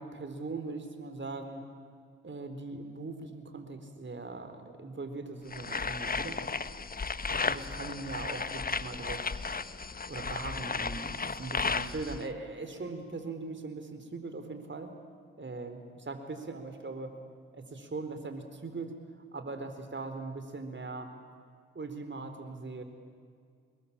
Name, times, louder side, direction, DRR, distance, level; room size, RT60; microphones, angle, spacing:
voice 1, 0.0-1.6 2.2-6.4 7.4-9.3 10.1-14.9 15.4-17.1 17.5-18.9 19.3-21.1 21.7-22.8, right 3 dB, 35° right, 7 dB, 4.1 m, -40 dB
sound 1, 5.5-12.2, left 4 dB, 25° left, 1.2 m, -34 dB
26.0 x 22.0 x 8.7 m, 2.1 s
hypercardioid pair, 40°, 33 cm